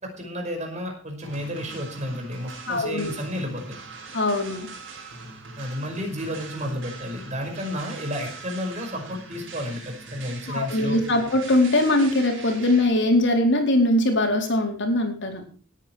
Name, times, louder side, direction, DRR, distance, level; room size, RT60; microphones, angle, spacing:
voice 1, 0.0-3.8 5.6-11.0, equal, 35° right, 3 dB, 5.3 m, -32 dB
sound 1, 1.2-12.9, right 4 dB, 65° right, 6.4 m, -41 dB
voice 2, 2.7-3.1 4.1-4.7 10.5-15.4, left 1 dB, 65° left, 3 dB, 4.4 m, -21 dB
18.5 x 9.7 x 4.6 m, 0.41 s
head